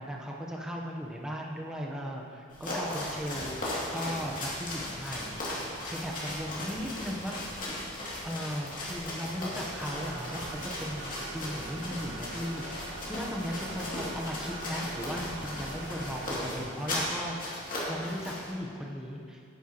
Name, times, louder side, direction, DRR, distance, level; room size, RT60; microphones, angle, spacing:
voice 1, 0.0-3.6 3.9-5.3 5.8-7.4 8.2-12.6 13.1-17.3 17.9-19.4, equal, 5° right, -2 dB, 0.8 m, -37 dB
sound 1, 2.5-18.5, left 1 dB, 45° left, 2.4 m, -37 dB
sound 2, 9.8-16.4, right 2 dB, 75° right, 1.2 m, -43 dB
9.9 x 9.7 x 2.9 m, 2.3 s
head